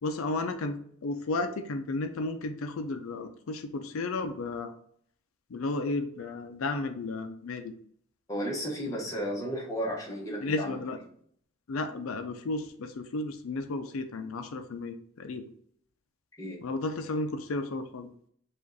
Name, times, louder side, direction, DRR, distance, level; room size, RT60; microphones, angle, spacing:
voice 1, 0.0-4.7 5.5-7.7 10.4-11.0 11.7-15.5 16.6-18.1, left 2 dB, 85° left, 8 dB, 0.5 m, -33 dB
voice 2, 8.3-10.8 16.4-16.6, equal, 15° left, -3 dB, 1.1 m, -33 dB
5.0 x 2.4 x 3.9 m, 0.62 s
head